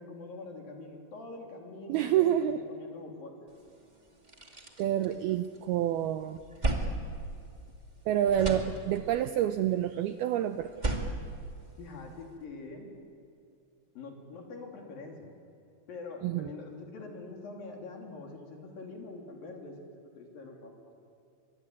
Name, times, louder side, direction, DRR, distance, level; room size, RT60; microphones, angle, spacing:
voice 1, 0.0-3.5 11.8-12.9 13.9-15.3 15.9-20.9, left 3 dB, 55° left, 2 dB, 4.7 m, -44 dB
voice 2, 1.9-2.6 4.8-6.4 8.1-10.7 16.2-16.5, right 11 dB, 80° right, 9 dB, 2.3 m, -28 dB
sound 1, 3.6-3.7 4.1-5.7 6.1-8.0 8.2-9.3 10.6-12.2, right 2 dB, 30° right, 0.7 m, -35 dB
25.0 x 23.5 x 9.8 m, 2.6 s
omnidirectional pair, 5.2 m